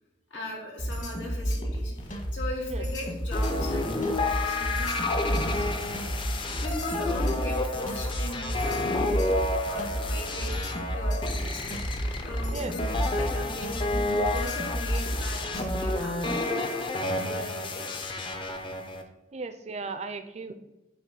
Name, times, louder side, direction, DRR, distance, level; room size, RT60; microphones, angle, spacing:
voice 1, 0.3-6.2 6.6-9.3 9.7-10.5 10.9-12.9 13.2-16.8 17.1-18.1, left 1 dB, 90° left, -2 dB, 2.2 m, -39 dB
sound 1, 0.8-16.0, equal, 45° left, 1.4 m, -31 dB
sound 2, 3.3-19.0, left 2 dB, 25° left, 0.6 m, -30 dB
voice 2, 19.3-20.5, right 4 dB, 35° right, 9 dB, 0.5 m, -36 dB
8.4 x 3.0 x 5.2 m, 1.0 s
head